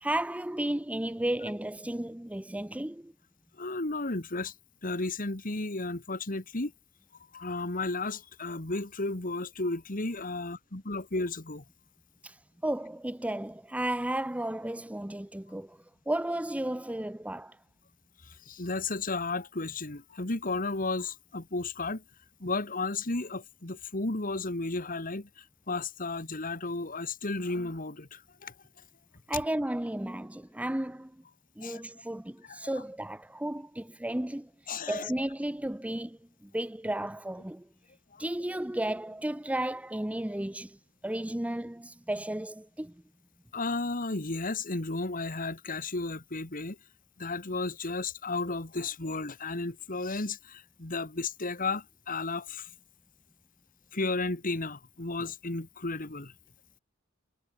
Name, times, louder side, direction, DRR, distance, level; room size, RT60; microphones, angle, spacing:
voice 1, 0.0-3.1 12.2-12.4 12.6-15.8 16.1-17.6 29.3-31.1 31.6-34.5 34.9-37.7 38.2-40.8 41.0-42.9, right 1 dB, 5° right, 0.6 m, -33 dB
voice 2, 3.6-4.5 4.8-6.7 7.3-11.6 18.2-22.0 22.4-28.5 29.3-29.4 31.6-31.8 32.5-32.7 34.7-35.1 38.1-38.3 43.5-46.8 47.2-52.7 53.9-56.3, left 3 dB, 45° left, 2.1 m, -33 dB
head